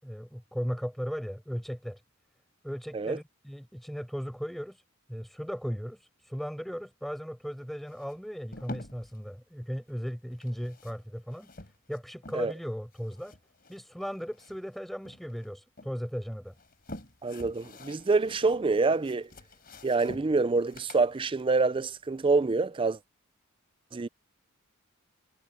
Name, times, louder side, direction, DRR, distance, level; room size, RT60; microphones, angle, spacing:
voice 1, 0.0-2.0 2.6-4.8 5.1-11.5 11.9-13.4 13.7-16.5, equal, ahead, 4.9 m, -37 dB
sound 1, 7.9-9.2 10.3-12.7 12.9-14.8 15.1-15.9 16.5-22.5, left 1 dB, 45° left, 4.0 m, -48 dB
voice 2, 17.2-19.3 19.8-23.0 23.9-24.1, right 3 dB, 25° right, 0.4 m, -26 dB
head